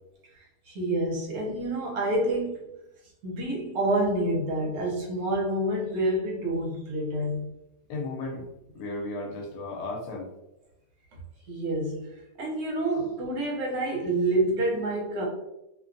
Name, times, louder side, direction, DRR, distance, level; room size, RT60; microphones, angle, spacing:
voice 1, 0.3-2.7 3.2-7.5 11.5-15.3, right 1 dB, 65° right, -2 dB, 1.2 m, -28 dB
voice 2, 7.9-10.3, left 2 dB, 80° left, 0 dB, 1.1 m, -35 dB
2.8 x 2.2 x 2.4 m, 0.87 s
omnidirectional pair, 1.8 m